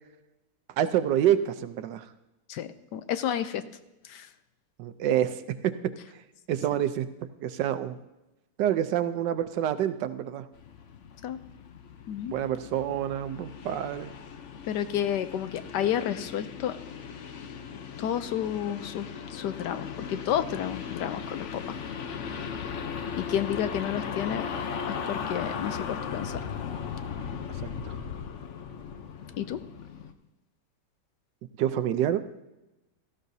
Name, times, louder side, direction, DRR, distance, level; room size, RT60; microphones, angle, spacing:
voice 1, 0.8-2.1 4.8-6.2 6.5-8.0 8.6-10.4 12.3-14.1 27.9-28.0 31.6-32.2, right 10 dB, 75° right, 10 dB, 1.3 m, -27 dB
voice 2, 2.5-3.6 4.0-4.3 11.2-11.4 12.1-12.3 14.7-16.8 18.0-21.8 22.1-22.5 23.2-24.4 25.1-26.4 29.4-29.6, left 10 dB, 75° left, 11 dB, 1.2 m, -31 dB
sound 1, 10.5-30.1, left 6 dB, 55° left, 0.9 m, -37 dB
16.5 x 14.0 x 2.7 m, 0.98 s
omnidirectional pair, 1.9 m